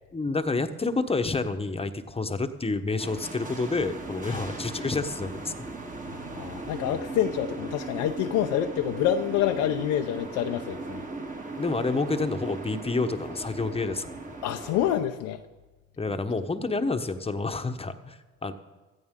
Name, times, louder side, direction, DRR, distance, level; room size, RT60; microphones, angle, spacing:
voice 1, 0.1-5.6 11.6-14.2 16.0-18.5, left 3 dB, 20° left, 1.1 m, -29 dB
sound 1, 3.0-15.0, right 3 dB, 25° right, 1.7 m, -38 dB
voice 2, 6.1-11.0 14.4-15.4, left 10 dB, 75° left, 0.7 m, -27 dB
16.0 x 14.0 x 3.7 m
supercardioid pair, 70°, 30 cm